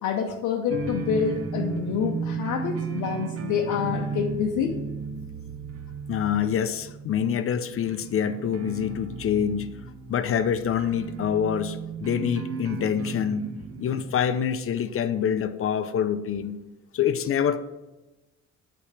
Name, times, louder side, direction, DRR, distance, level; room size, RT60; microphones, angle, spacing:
voice 1, 0.0-4.8, left 7 dB, 85° left, 0 dB, 0.7 m, -27 dB
sound 1, 0.7-14.3, right 5 dB, 50° right, 0.7 m, -35 dB
voice 2, 6.1-9.7 10.1-13.5 13.8-16.6 16.9-17.6, left 8 dB, 50° left, 12 dB, 0.6 m, -26 dB
8.2 x 3.5 x 6.6 m, 1.1 s
cardioid pair, 90°, 30 cm